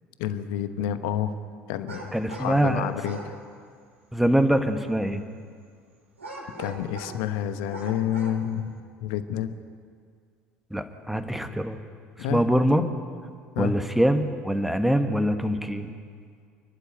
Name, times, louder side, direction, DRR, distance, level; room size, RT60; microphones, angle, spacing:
voice 1, 0.2-1.3 1.7-3.3 6.6-8.7 9.0-9.5 12.2-12.4 13.6-13.7, left 10 dB, 60° left, 11 dB, 1.0 m, -29 dB
sound 1, 1.9-2.6 3.0-3.3 6.2-7.2 7.7-8.4, right 1 dB, 80° right, 3.3 m, -40 dB
voice 2, 2.1-2.9 4.1-5.2 10.7-11.8 12.3-12.8 13.6-15.9, equal, 5° right, 7 dB, 1.6 m, -23 dB
28.5 x 11.5 x 9.4 m, 2.1 s
figure-of-eight pair, 60°, 7 cm